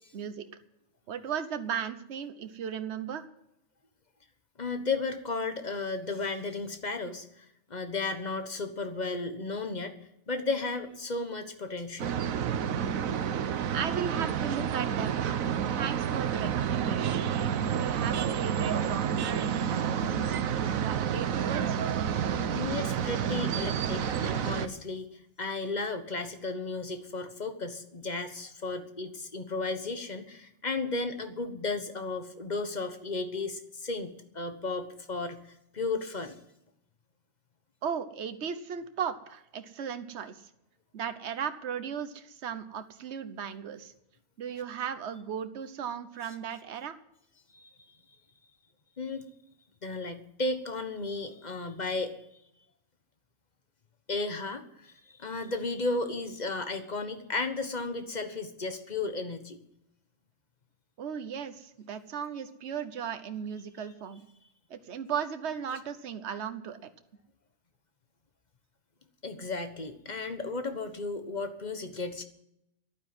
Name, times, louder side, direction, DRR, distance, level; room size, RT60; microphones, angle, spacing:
voice 1, 0.1-0.4 1.1-3.2 13.7-15.3 15.7-17.3 17.7-21.8 37.8-40.4 40.9-43.9 44.4-47.0 61.0-64.3 64.7-66.9, right 7 dB, 55° right, 11 dB, 1.2 m, -36 dB
voice 2, 4.6-9.9 10.3-12.1 22.5-35.4 35.7-36.4 47.5-47.7 49.0-49.2 49.8-52.2 54.1-54.9 55.2-59.6 69.2-72.2, left 3 dB, 35° left, 8 dB, 1.3 m, -34 dB
sound 1, 12.0-24.7, right 8 dB, 85° right, 1.2 m, -29 dB
11.5 x 9.3 x 9.6 m, 0.80 s
omnidirectional pair, 1.4 m